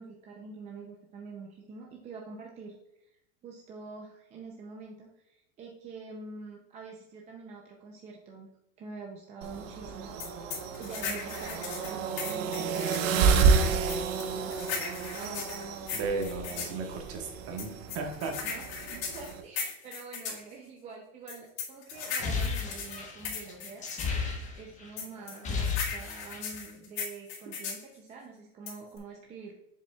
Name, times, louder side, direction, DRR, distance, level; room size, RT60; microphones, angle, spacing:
voice 1, 0.0-2.8 3.0-3.2 3.4-8.5 8.8-10.2 10.8-15.0 18.2-23.8 24.6-29.5, right 4 dB, 15° right, -1 dB, 0.5 m, -46 dB
sound 1, 9.4-19.4, right 5 dB, 65° right, 1.1 m, -30 dB
sound 2, 10.2-13.1 13.9-16.8 17.6-20.4 21.3-24.2 25.0-27.8 28.7-29.0, left 6 dB, 50° left, 1.9 m, -37 dB
voice 2, 15.9-18.3, right 4 dB, 35° right, 3 dB, 1.4 m, -35 dB
sound 3, 22.0-24.9 25.2-26.6, left 5 dB, 15° left, 1.1 m, -33 dB
7.2 x 7.1 x 2.3 m, 0.85 s
supercardioid pair, 155°, 42 cm